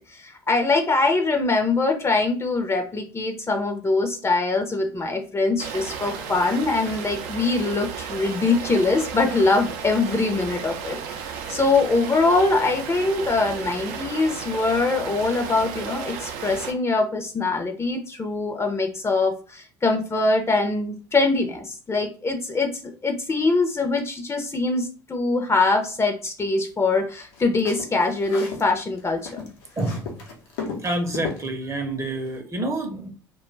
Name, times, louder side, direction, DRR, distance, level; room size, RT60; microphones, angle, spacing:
voice 1, 0.0-29.4, left 3 dB, 25° left, 4 dB, 0.6 m, -23 dB
sound 1, 5.6-16.7, right 7 dB, 65° right, 0.5 m, -34 dB
sound 2, 27.2-28.7 29.0-31.5, left 5 dB, 75° left, 0.7 m, -35 dB
voice 2, 29.8-30.2 30.8-33.1, right 1 dB, 25° right, 4 dB, 0.7 m, -28 dB
2.2 x 2.2 x 3.1 m, 0.37 s
hypercardioid pair, 65°, 12 cm